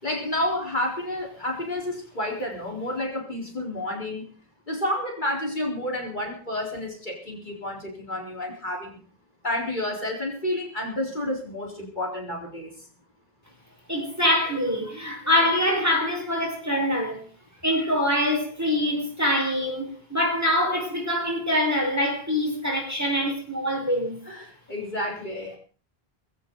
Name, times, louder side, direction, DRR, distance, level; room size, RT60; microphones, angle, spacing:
voice 1, 0.0-4.2 4.7-9.0 9.4-12.7 24.3-25.6, left 1 dB, 50° left, 4.4 m, -30 dB
voice 2, 13.9-17.2 17.6-24.2, left 1 dB, 15° right, 5.0 m, -24 dB
20.0 x 16.5 x 4.0 m
omnidirectional pair, 1.0 m